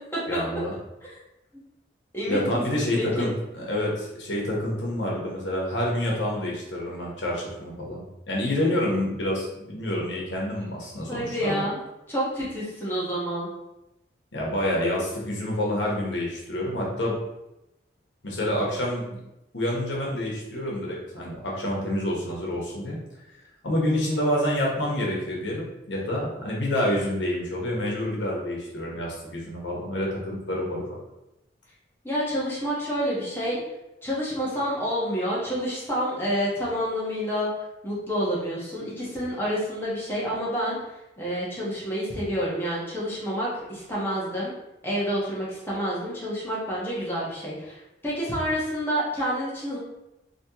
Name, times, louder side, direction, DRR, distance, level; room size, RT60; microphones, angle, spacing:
voice 1, 0.3-0.7 2.3-11.7 14.3-17.1 18.2-19.2 19.5-23.0 23.6-30.8, left 1 dB, 80° left, -3 dB, 1.1 m, -28 dB
voice 2, 2.1-3.3 11.1-11.8 12.1-13.5 32.0-33.6 34.0-37.5 37.8-44.5 44.8-49.8, equal, 10° left, -7 dB, 1.1 m, -28 dB
4.2 x 2.9 x 2.9 m, 0.91 s
head